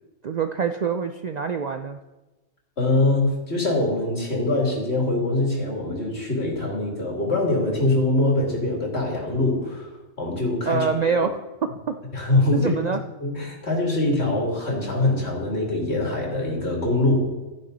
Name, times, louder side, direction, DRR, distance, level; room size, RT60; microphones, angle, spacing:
voice 1, 0.2-2.0 10.7-12.0 12.5-13.0, right 5 dB, 55° right, 7 dB, 0.5 m, -25 dB
voice 2, 2.8-9.9 10.2-10.9 12.1-12.7 13.2-17.4, left 2 dB, 65° left, -1 dB, 3.0 m, -23 dB
13.5 x 10.5 x 4.0 m, 1.1 s
omnidirectional pair, 1.2 m